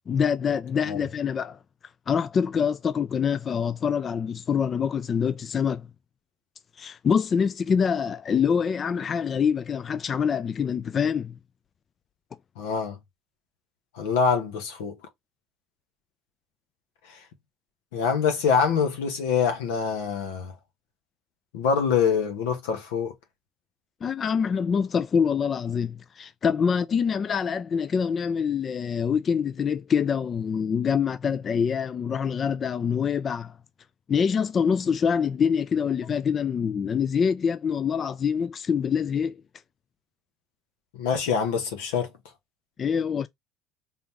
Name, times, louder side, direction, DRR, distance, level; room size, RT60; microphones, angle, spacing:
voice 1, 0.1-1.6 2.1-5.9 6.8-11.3 24.0-33.5 34.1-39.4 42.8-43.3, left 7 dB, 35° left, 0.4 m, -25 dB
voice 2, 12.6-13.0 13.9-15.0 17.1-17.2 17.9-20.5 21.5-23.1 40.9-42.1, left 6 dB, 85° left, 1.5 m, -25 dB
4.0 x 3.6 x 2.9 m
supercardioid pair, 95°, 0 cm